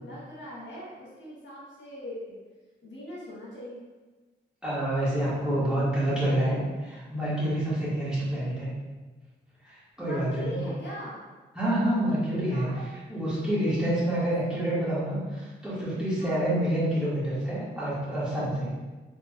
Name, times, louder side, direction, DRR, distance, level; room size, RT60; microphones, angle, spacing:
voice 1, 0.0-2.4 2.8-3.8 10.0-11.2 12.3-14.9 16.2-16.4, equal, 70° left, -6 dB, 1.1 m, -41 dB
voice 2, 4.6-8.7 9.6-10.6 11.5-12.7 13.1-18.7, right 1 dB, 5° right, -10 dB, 1.3 m, -27 dB
3.2 x 3.0 x 2.3 m, 1.2 s
cardioid pair, 100°, 19 cm